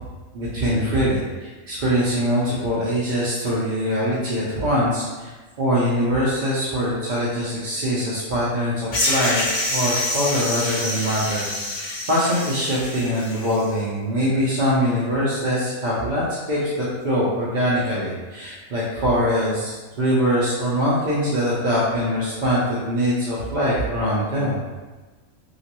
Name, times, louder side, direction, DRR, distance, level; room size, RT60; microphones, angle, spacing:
voice 1, 0.3-5.3 5.6-9.4 9.7-11.8 12.1-24.6, equal, 50° right, -8 dB, 0.5 m, -23 dB
sound 1, 8.9-13.6, left 1 dB, 60° left, 1.3 m, -26 dB
3.0 x 2.9 x 2.9 m, 1.3 s
omnidirectional pair, 1.4 m